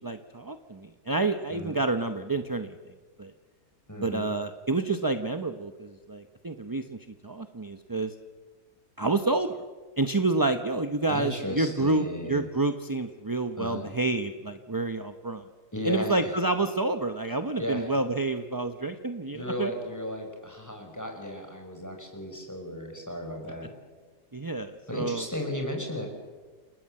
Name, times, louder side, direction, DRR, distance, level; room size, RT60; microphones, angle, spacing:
voice 1, 0.0-2.8 3.2-3.3 4.0-7.0 7.2-8.1 9.0-9.6 10.0-15.4 15.8-19.7 24.3-25.3, right 2 dB, 20° right, 8 dB, 0.6 m, -29 dB
voice 2, 1.5-1.8 3.9-4.3 11.1-12.5 13.6-13.9 15.7-16.3 17.6-17.9 19.3-23.7 24.9-26.1, equal, 10° left, 2 dB, 5.1 m, -35 dB
29.0 x 18.5 x 7.7 m, 1.4 s
omnidirectional pair, 1.7 m